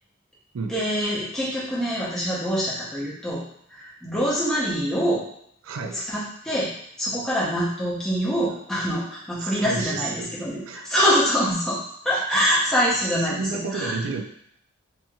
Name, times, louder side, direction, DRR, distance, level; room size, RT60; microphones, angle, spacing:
voice 1, 0.7-3.4 3.7-5.2 6.1-6.7 7.0-11.8 12.0-14.2, equal, 5° left, -8 dB, 0.7 m, -25 dB
voice 2, 5.6-6.1 9.4-10.3 10.7-10.8 12.1-12.5 13.2-14.2, right 4 dB, 75° right, 3 dB, 0.4 m, -31 dB
3.0 x 2.7 x 2.3 m, 0.70 s
head